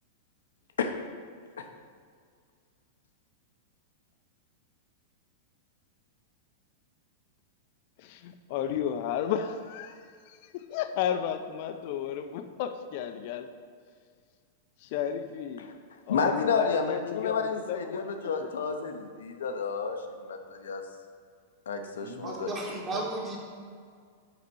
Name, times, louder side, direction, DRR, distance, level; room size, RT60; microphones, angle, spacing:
voice 1, 8.0-10.0 10.3-13.5 14.8-15.7 16.1-18.0 18.4-18.5, left 9 dB, 55° left, 9 dB, 0.6 m, -33 dB
voice 2, 16.1-20.8 21.7-22.5, left 5 dB, 85° left, 5 dB, 0.8 m, -31 dB
voice 3, 22.0-23.4, right 2 dB, 25° right, -2 dB, 1.9 m, -34 dB
6.8 x 4.1 x 6.2 m, 2.1 s
hypercardioid pair, 120°, 0 cm